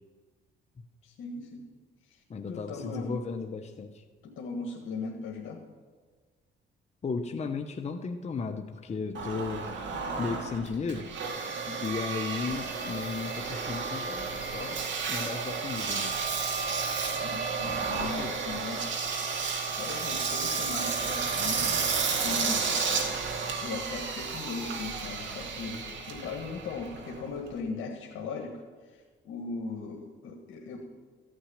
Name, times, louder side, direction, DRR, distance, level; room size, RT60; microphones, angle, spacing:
voice 1, 1.0-1.6 2.0-3.2 4.2-5.6 11.5-11.8 17.1-18.8 19.1-19.3 19.8-21.8 22.2-22.7 23.6-30.8, left 4 dB, 80° left, 0 dB, 1.6 m, -38 dB
voice 2, 2.3-4.0 7.0-9.7 10.2-11.1 11.8-16.2 18.0-18.4, left 4 dB, 35° left, 6 dB, 0.9 m, -35 dB
Engine, 9.1-27.6, right 5 dB, 65° right, 2.4 m, -32 dB
14.5 x 6.3 x 9.9 m, 1.4 s
cardioid pair, 90°, 20 cm